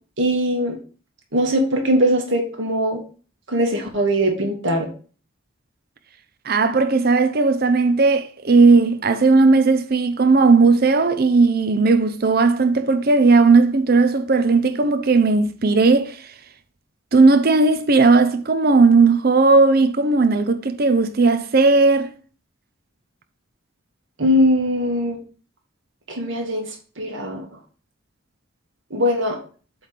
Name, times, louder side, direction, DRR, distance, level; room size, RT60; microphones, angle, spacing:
voice 1, 0.2-0.8 1.3-3.0 3.5-4.9 24.2-25.2 26.1-26.7 27.0-27.5 28.9-29.4, equal, 65° right, 2.0 m, -20 dB
voice 2, 6.4-16.2 17.1-22.1, right 3 dB, 45° right, 0.6 m, -16 dB
7.8 x 3.4 x 5.9 m
head